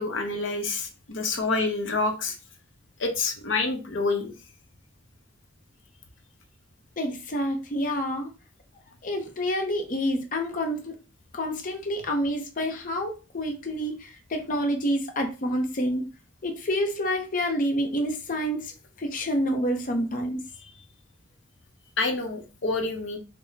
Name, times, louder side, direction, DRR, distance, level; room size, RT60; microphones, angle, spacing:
voice 1, 0.0-2.4 3.0-4.3 22.0-23.2, left 3 dB, 75° left, 5 dB, 0.7 m, -27 dB
voice 2, 7.0-8.3 9.0-11.0 11.3-16.1 16.4-18.7 19.0-20.5, equal, 45° left, 3 dB, 0.6 m, -28 dB
4.0 x 2.1 x 3.9 m, 0.31 s
head